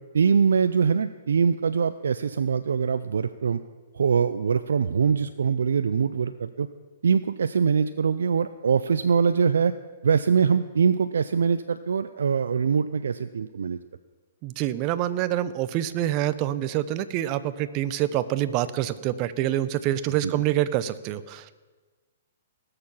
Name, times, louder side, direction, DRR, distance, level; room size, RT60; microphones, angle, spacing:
voice 1, 0.1-3.6 3.9-6.7 7.0-9.7 10.0-13.8 20.2-20.4, right 6 dB, 80° right, 11 dB, 0.4 m, -23 dB
voice 2, 14.4-21.5, right 13 dB, 40° right, 14 dB, 0.7 m, -26 dB
18.5 x 6.8 x 5.6 m, 1.3 s
hypercardioid pair, 130°, 0 cm